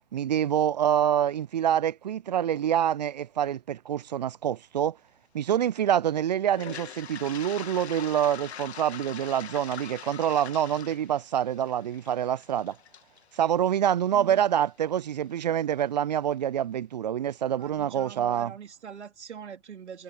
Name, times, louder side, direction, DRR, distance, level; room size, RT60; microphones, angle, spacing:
voice 1, 0.1-5.0 5.3-12.8 13.3-18.5, right 10 dB, 35° right, 0.4 m, -26 dB
Toilet flush, 6.4-14.4, left 8 dB, 60° left, 2.3 m, -43 dB
voice 2, 14.1-14.4 17.6-20.0, right 7 dB, 65° right, 3.9 m, -43 dB
figure-of-eight pair, 130°, 37 cm